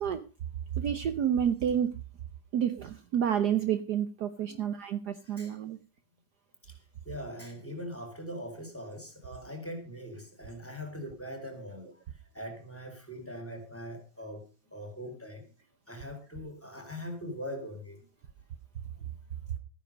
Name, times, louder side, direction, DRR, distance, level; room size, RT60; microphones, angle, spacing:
voice 1, 0.8-1.9 2.5-5.8, right 9 dB, 60° right, 10 dB, 1.3 m, -29 dB
voice 2, 5.2-5.5 6.6-6.7 7.0-11.9 12.3-14.4 14.7-15.4 15.9-18.0, equal, 5° left, 5 dB, 4.2 m, -41 dB
14.5 x 10.0 x 5.2 m, 0.33 s
omnidirectional pair, 2.1 m